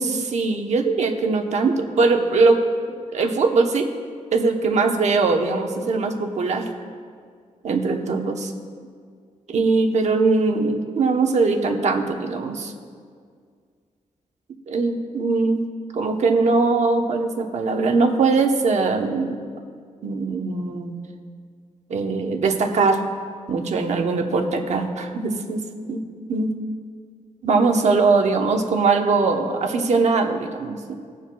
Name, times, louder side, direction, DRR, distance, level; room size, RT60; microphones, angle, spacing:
voice 1, 0.0-2.6 3.1-3.9 4.3-6.7 7.6-8.5 9.5-12.7 14.7-15.6 15.9-19.4 20.0-20.9 21.9-23.0 23.5-25.6 25.9-26.0 26.3-26.5 27.4-30.9, right 3 dB, 60° right, 3 dB, 1.0 m, -21 dB
21.5 x 7.5 x 2.3 m, 2.1 s
wide cardioid pair, 175°, 13 cm